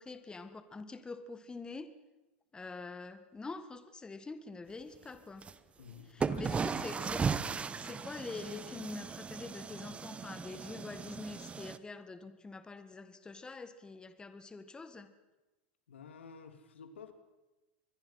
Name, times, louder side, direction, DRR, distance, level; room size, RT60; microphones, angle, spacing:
voice 1, 0.0-1.9 2.5-5.5 6.1-7.3 7.8-15.1, left 3 dB, 15° left, 10 dB, 1.8 m, -45 dB
sound 1, 5.4-5.5 6.2-11.8, right 5 dB, 20° right, 1.0 m, -37 dB
voice 2, 5.8-6.9 15.9-17.1, left 6 dB, 90° left, 8 dB, 2.7 m, -51 dB
26.0 x 21.5 x 5.8 m, 1.1 s
hypercardioid pair, 110°, 6 cm